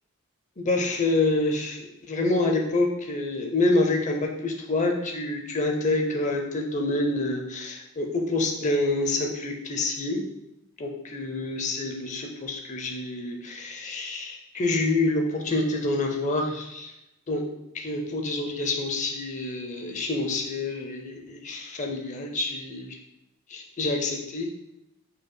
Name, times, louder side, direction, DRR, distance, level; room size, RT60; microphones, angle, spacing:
voice 1, 0.6-10.2 10.8-16.9 17.3-17.4 17.7-22.9 23.5-24.5, left 2 dB, 35° left, 2 dB, 0.6 m, -27 dB
5.2 x 4.4 x 2.2 m, 0.87 s
head